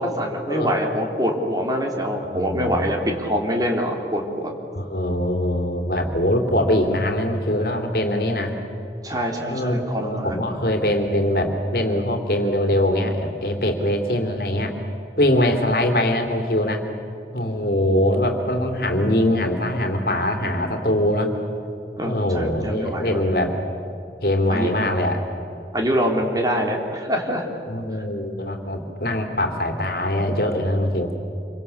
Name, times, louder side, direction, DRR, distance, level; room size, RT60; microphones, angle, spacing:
voice 1, 0.0-4.5 9.0-10.4 22.0-23.2 24.5-24.7 25.7-27.6, equal, 20° right, 1 dB, 3.2 m, -24 dB
voice 2, 2.3-2.9 4.7-8.5 9.5-14.7 15.2-16.8 17.3-21.3 22.0-23.6 24.2-25.2 27.7-31.1, left 1 dB, 55° left, 5 dB, 3.1 m, -22 dB
27.5 x 24.5 x 7.2 m, 2.7 s
head